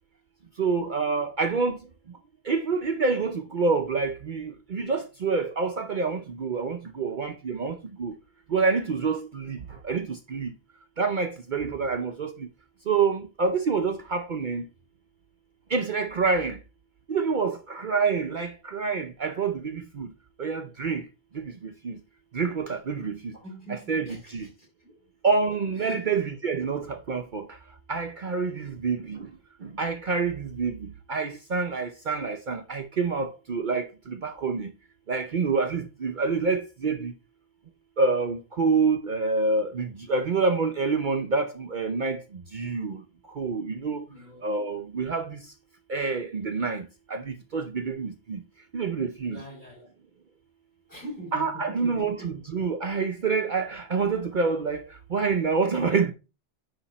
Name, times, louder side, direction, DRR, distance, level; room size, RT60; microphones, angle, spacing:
voice 1, 0.6-1.8 2.4-8.1 8.5-10.5 11.0-12.5 12.9-14.7 15.7-16.6 17.1-20.1 20.4-21.1 21.3-22.0 22.3-23.4 23.7-24.5 25.2-27.6 27.9-29.3 29.6-34.7 35.1-37.1 38.0-43.0 43.3-44.0 44.4-45.5 45.9-48.4 48.7-49.4 51.3-56.1, right 4 dB, 50° right, 0.8 m, -27 dB
voice 2, 23.3-24.5 24.8-24.9 25.8-26.2 28.6-28.7 44.1-44.4 49.3-49.9 50.9-52.3, right 1 dB, 45° left, 5.3 m, -42 dB
9.9 x 3.5 x 4.1 m
omnidirectional pair, 1.1 m